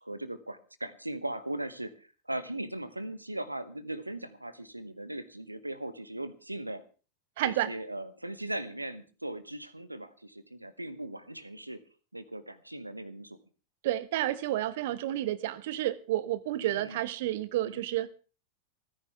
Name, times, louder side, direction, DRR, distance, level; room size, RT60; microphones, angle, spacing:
voice 1, 0.0-6.8 7.4-11.8 12.1-13.4 16.6-17.0 17.6-17.8, right 1 dB, 85° right, 1.0 m, -39 dB
voice 2, 7.4-7.7 13.8-18.1, right 14 dB, 55° right, 1.0 m, -30 dB
28.0 x 10.0 x 3.5 m
figure-of-eight pair, 90°, 0 cm